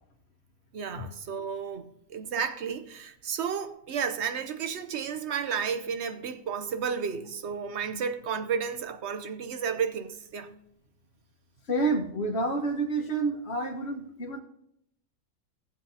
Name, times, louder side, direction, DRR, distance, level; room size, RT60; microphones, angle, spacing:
voice 1, 0.7-10.5, right 6 dB, 55° right, 1.0 m, -32 dB
voice 2, 11.7-14.4, right 2 dB, 45° left, 1.6 m, -29 dB
17.5 x 7.8 x 2.8 m
omnidirectional pair, 1.6 m